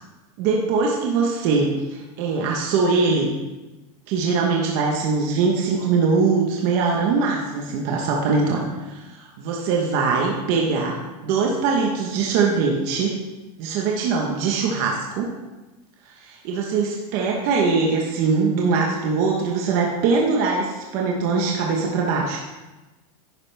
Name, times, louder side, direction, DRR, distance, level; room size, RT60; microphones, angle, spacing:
voice 1, 0.4-3.3 4.1-13.1 13.6-15.3 16.2-22.4, right 4 dB, 40° right, -1 dB, 1.2 m, -22 dB
10.5 x 9.8 x 3.5 m, 1.1 s
supercardioid pair, 175°, 18 cm